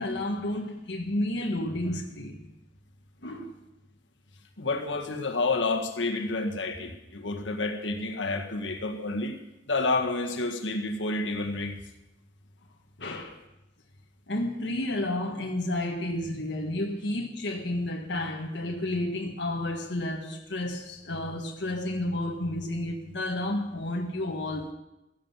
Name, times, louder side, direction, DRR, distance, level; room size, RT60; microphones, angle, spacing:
voice 1, 0.0-2.4 3.2-3.6 13.0-13.4 14.3-24.7, left 1 dB, 75° left, 1.6 m, -31 dB
voice 2, 4.6-9.4 9.7-11.8, left 3 dB, 90° left, 1.8 m, -29 dB
14.5 x 11.5 x 7.4 m
head